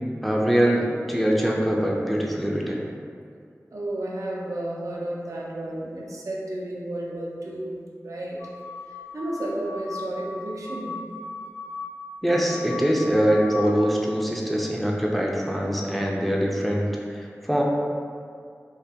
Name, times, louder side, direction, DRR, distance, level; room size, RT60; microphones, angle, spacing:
voice 1, 0.2-2.8 12.2-17.6, equal, ahead, -2 dB, 0.3 m, -23 dB
voice 2, 3.7-8.4 9.1-11.1, right 1 dB, 70° right, -3 dB, 0.4 m, -32 dB
sound 1, 8.4-13.8, left 4 dB, 75° left, 0.4 m, -38 dB
2.2 x 2.2 x 2.7 m, 2.2 s
wide cardioid pair, 40°, 6 cm